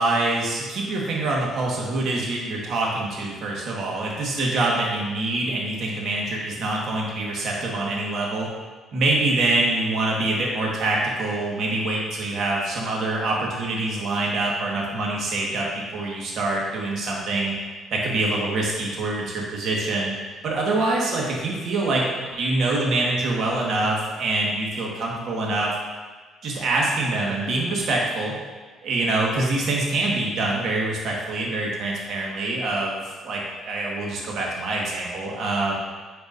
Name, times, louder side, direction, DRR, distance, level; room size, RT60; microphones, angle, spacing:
voice 1, 0.0-8.5 8.9-17.5 17.9-20.1 20.4-25.7 26.4-28.3 28.8-35.7, right 2 dB, 65° right, -3 dB, 1.6 m, -25 dB
9.3 x 4.6 x 2.7 m, 1.4 s
cardioid pair, 80°, 0 cm